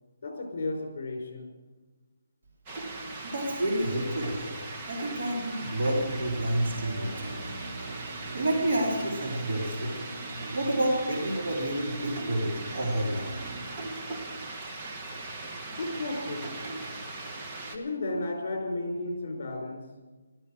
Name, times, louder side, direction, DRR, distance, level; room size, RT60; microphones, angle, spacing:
voice 1, 0.2-1.5 15.7-16.8 17.7-19.8, left 2 dB, 45° left, 2 dB, 4.5 m, -33 dB
sound 1, 2.7-17.8, right 2 dB, 20° right, 1.3 m, -39 dB
voice 2, 3.2-7.1 8.3-9.9 10.5-13.4, right 1 dB, 55° right, -2 dB, 3.8 m, -29 dB
sound 2, 5.8-13.6, right 2 dB, 90° right, 2.6 m, -42 dB
16.5 x 12.0 x 6.4 m, 1.2 s
hypercardioid pair, 170°, 0 cm